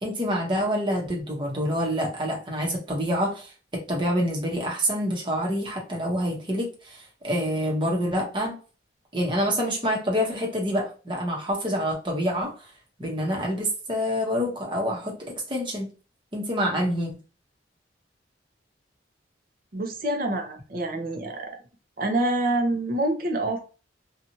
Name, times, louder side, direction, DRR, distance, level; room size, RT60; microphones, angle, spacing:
voice 1, 0.0-8.5 9.1-12.5 13.0-15.9 16.3-17.2, equal, 25° right, -1 dB, 0.9 m, -27 dB
voice 2, 19.7-21.5 22.0-23.6, right 1 dB, 50° right, 3 dB, 0.7 m, -26 dB
2.7 x 2.4 x 2.7 m, 0.35 s
head